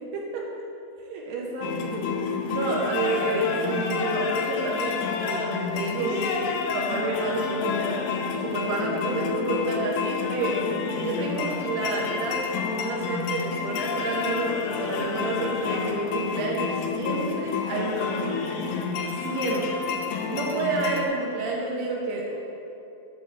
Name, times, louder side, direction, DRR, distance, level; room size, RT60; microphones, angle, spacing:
voice 1, 0.1-0.5 1.1-8.0 8.4-10.6 11.0-18.4 19.1-19.9 20.3-22.4, right 2 dB, 75° right, -2 dB, 2.5 m, -29 dB
sound 1, 1.6-21.1, left 5 dB, 80° left, 2.9 m, -29 dB
10.0 x 3.7 x 7.1 m, 2.8 s
omnidirectional pair, 5.6 m